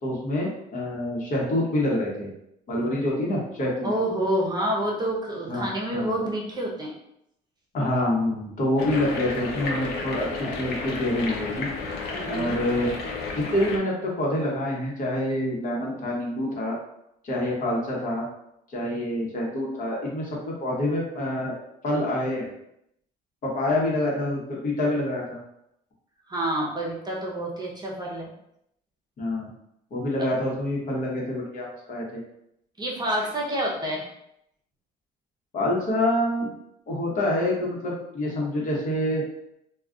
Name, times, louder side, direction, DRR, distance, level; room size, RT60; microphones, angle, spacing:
voice 1, 0.0-2.3 2.7-3.9 5.5-5.6 5.9-6.1 7.7-11.7 12.3-12.9 13.3-16.7 17.2-18.2 18.7-21.6 21.8-22.5 23.4-25.4 29.2-29.5 29.9-32.2 35.5-36.5 36.9-39.2, left 1 dB, 50° left, -3 dB, 1.1 m, -26 dB
voice 2, 3.8-6.9 12.1-12.5 26.3-28.3 32.8-34.1, right 1 dB, 25° right, -2 dB, 0.7 m, -28 dB
Water Through Drain (With Reverb), 8.8-13.8, left 4 dB, 80° left, 0.6 m, -32 dB
2.4 x 2.3 x 3.7 m, 0.78 s
cardioid pair, 110°, 17 cm